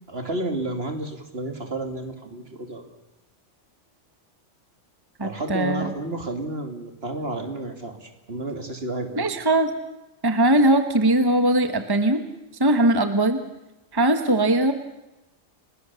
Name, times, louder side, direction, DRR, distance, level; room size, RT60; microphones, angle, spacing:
voice 1, 0.1-2.8 5.2-9.2, right 2 dB, 55° right, 5 dB, 3.0 m, -31 dB
voice 2, 5.2-5.9 9.2-9.7 10.2-12.2 12.6-13.4 13.9-14.7, right 1 dB, 20° right, 8 dB, 1.3 m, -20 dB
30.0 x 20.0 x 7.0 m, 0.97 s
omnidirectional pair, 1.3 m